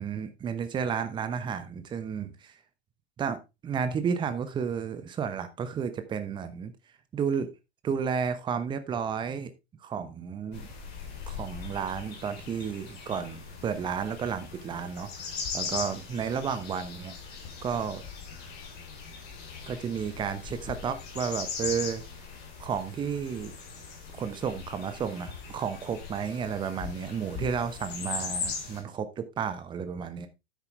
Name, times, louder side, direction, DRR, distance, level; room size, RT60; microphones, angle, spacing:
voice 1, 0.0-2.5 3.2-6.7 7.1-7.5 7.8-9.5 9.8-10.7 11.3-17.1 17.6-18.0 19.7-22.0 22.6-23.5 24.1-30.3, right 7 dB, 15° right, 1.0 m, -32 dB
sound 1, 10.5-28.8, left 5 dB, 30° left, 4.1 m, -39 dB
9.9 x 8.3 x 3.4 m
figure-of-eight pair, 100°, 34 cm